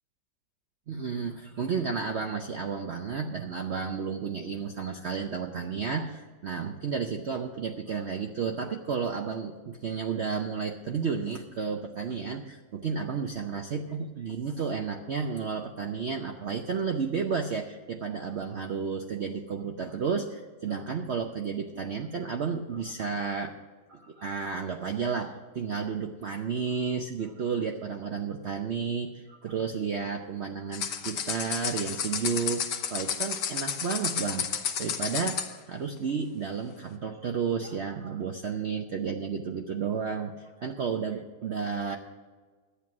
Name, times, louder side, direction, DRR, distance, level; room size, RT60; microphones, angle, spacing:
voice 1, 0.9-23.5 23.9-34.5 34.8-42.0, right 6 dB, 55° right, 3 dB, 0.8 m, -32 dB
sound 1, 30.7-35.6, left 8 dB, 85° left, 1.5 m, -32 dB
11.5 x 9.1 x 6.1 m, 1.4 s
omnidirectional pair, 1.8 m